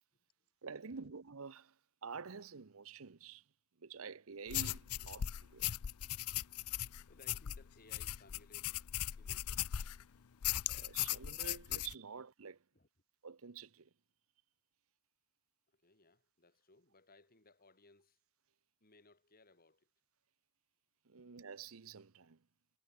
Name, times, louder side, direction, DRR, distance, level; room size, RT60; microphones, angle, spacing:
voice 1, 0.6-1.8 2.0-3.4 3.8-5.7 10.7-12.6 13.2-13.9 21.1-22.4, right 5 dB, 70° right, 0.8 m, -49 dB
sound 1, 4.5-10.0 10.4-11.9, left 12 dB, 90° left, 0.5 m, -38 dB
voice 2, 7.1-8.9 9.2-9.8 12.7-12.9 15.7-18.2 18.8-19.9, left 2 dB, 45° left, 4.8 m, -65 dB
head